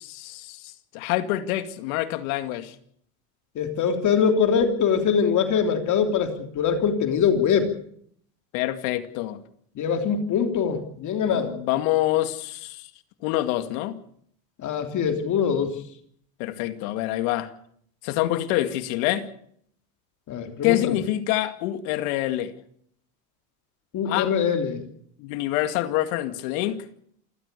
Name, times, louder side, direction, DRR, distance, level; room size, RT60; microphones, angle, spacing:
voice 1, 0.0-2.8 8.5-9.4 11.3-12.9 13.2-14.0 16.4-17.5 18.0-19.3 20.6-22.5 24.1-24.3 25.2-26.8, left 15 dB, 65° left, 10 dB, 2.4 m, -26 dB
voice 2, 3.5-7.7 9.7-11.5 14.6-15.8 20.3-21.0 23.9-24.8, left 7 dB, 40° left, 5 dB, 3.3 m, -23 dB
28.0 x 14.5 x 6.9 m, 0.65 s
supercardioid pair, 120°, 46 cm